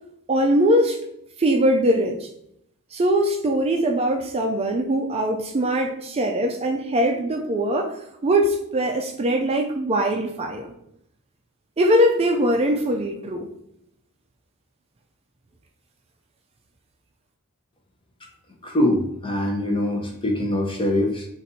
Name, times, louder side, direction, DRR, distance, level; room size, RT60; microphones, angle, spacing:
voice 1, 0.3-1.0 1.4-2.3 2.9-7.9 8.2-10.7 11.8-13.5, right 1 dB, 25° right, 3 dB, 0.4 m, -21 dB
voice 2, 18.6-21.3, left 1 dB, 25° left, 1 dB, 0.8 m, -23 dB
4.0 x 2.5 x 4.1 m, 0.75 s
head